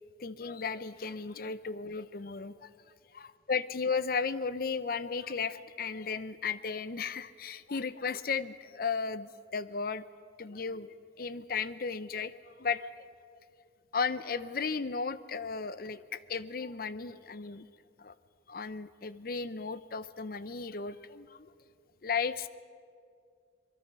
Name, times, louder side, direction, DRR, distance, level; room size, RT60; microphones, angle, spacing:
voice 1, 0.2-2.7 3.1-10.0 10.4-12.9 13.9-17.7 18.0-18.1 18.5-21.5 22.0-22.5, left 5 dB, 50° left, 14 dB, 0.6 m, -35 dB
26.0 x 21.0 x 5.5 m, 2.3 s
head